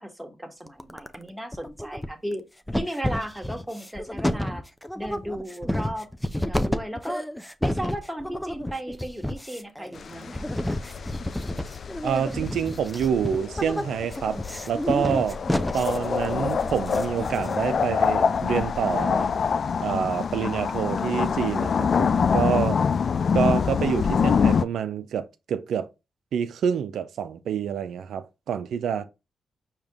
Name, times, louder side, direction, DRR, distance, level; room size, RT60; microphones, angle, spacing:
voice 1, 0.0-2.4 2.7-4.7 4.9-6.1 6.3-7.2 7.6-10.8, equal, 5° right, 1.3 m, -35 dB
sound 1, 0.7-1.2 1.5-2.3 2.7-17.8, left 1 dB, 10° left, 0.5 m, -30 dB
sound 2, 10.0-24.6, left 6 dB, 60° left, 0.3 m, -26 dB
voice 2, 12.0-15.4 15.7-19.3 19.8-22.8 23.3-25.9 26.3-29.0, right 8 dB, 75° right, 0.5 m, -27 dB
4.9 x 2.9 x 3.5 m
supercardioid pair, 50°, 0 cm